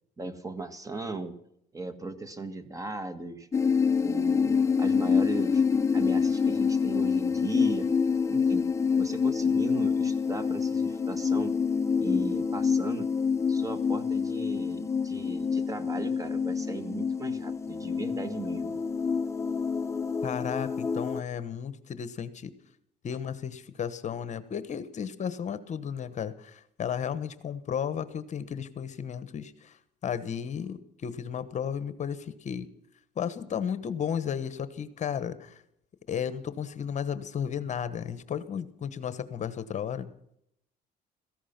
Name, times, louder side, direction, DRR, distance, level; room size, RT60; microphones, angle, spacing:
voice 1, 0.2-1.3 1.7-3.5 4.0-7.9 8.3-8.7 9.0-11.6 12.0-13.1 13.5-18.8, right 2 dB, 20° right, 12 dB, 1.7 m, -37 dB
sound 1, 3.5-21.2, left 5 dB, 15° left, 0.6 m, -27 dB
voice 2, 20.2-22.5 23.0-32.7 33.2-35.6 36.1-40.1, left 8 dB, 45° left, 14 dB, 1.2 m, -34 dB
17.0 x 14.5 x 5.9 m, 0.74 s
cardioid pair, 110°, 17 cm